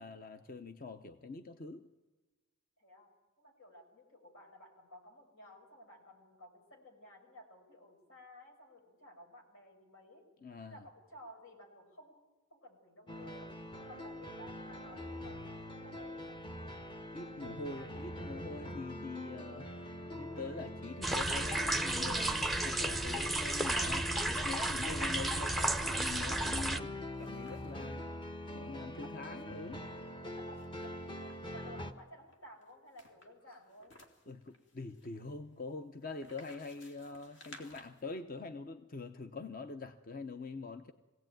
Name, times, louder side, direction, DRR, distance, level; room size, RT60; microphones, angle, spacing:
voice 1, 0.0-1.8 10.4-10.9 17.1-28.0 28.5-29.8 34.3-40.9, left 3 dB, 40° left, 8 dB, 0.7 m, -44 dB
voice 2, 2.8-3.1 3.4-10.2 10.6-12.2 12.5-13.5 13.9-18.0 28.9-29.1 30.2-33.9, equal, 85° left, 2 dB, 5.8 m, -56 dB
sound 1, 13.1-31.9, equal, 25° left, 1.0 m, -44 dB
sound 2, 21.0-26.8, right 1 dB, ahead, 0.6 m, -33 dB
sound 3, 21.3-27.9 28.4-28.5 28.7-29.9 30.5-31.6 32.3-38.0, left 2 dB, 60° left, 2.8 m, -60 dB
22.0 x 17.0 x 9.1 m, 1.2 s
head